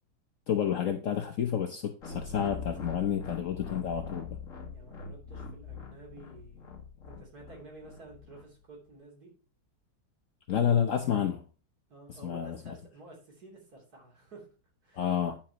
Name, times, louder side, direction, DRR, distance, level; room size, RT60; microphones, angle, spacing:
voice 1, 0.5-4.3 10.5-11.4 12.2-12.7 14.9-15.4, left 9 dB, 70° left, 0.7 m, -29 dB
sound 1, 2.0-8.4, left 4 dB, 40° left, 1.7 m, -42 dB
voice 2, 4.7-6.7 7.1-9.3 11.9-14.5 14.8-15.1, right 2 dB, 45° right, 3.5 m, -51 dB
9.7 x 7.3 x 2.9 m
omnidirectional pair, 2.3 m